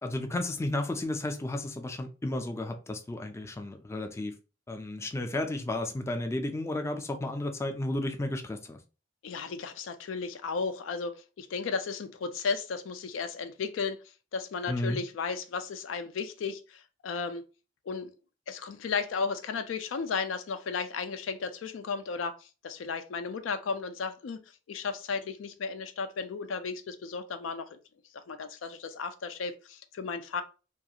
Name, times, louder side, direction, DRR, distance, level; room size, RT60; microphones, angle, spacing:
voice 1, 0.0-4.3 4.7-8.8 14.7-15.0, left 1 dB, 15° left, 0.3 m, -33 dB
voice 2, 9.2-14.0 14.3-17.4 17.9-18.1 18.5-22.4 22.6-27.8 28.1-30.4, left 5 dB, 90° left, 0.4 m, -34 dB
2.4 x 2.3 x 2.7 m
head